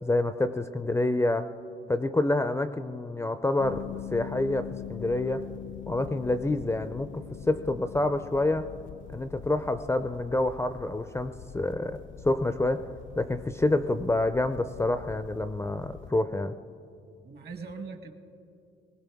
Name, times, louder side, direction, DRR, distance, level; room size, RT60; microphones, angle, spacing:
voice 1, 0.0-1.5 1.9-5.5 5.9-7.1 7.5-8.7 9.1-12.0 12.2-12.8 13.1-16.6, left 2 dB, 15° left, 10 dB, 0.4 m, -27 dB
sound 1, 3.6-16.1, left 10 dB, 70° left, 0.5 m, -43 dB
voice 2, 17.2-18.1, right 4 dB, 50° right, 7 dB, 1.3 m, -42 dB
20.0 x 18.0 x 3.5 m, 2.5 s
cardioid pair, 105°, 20 cm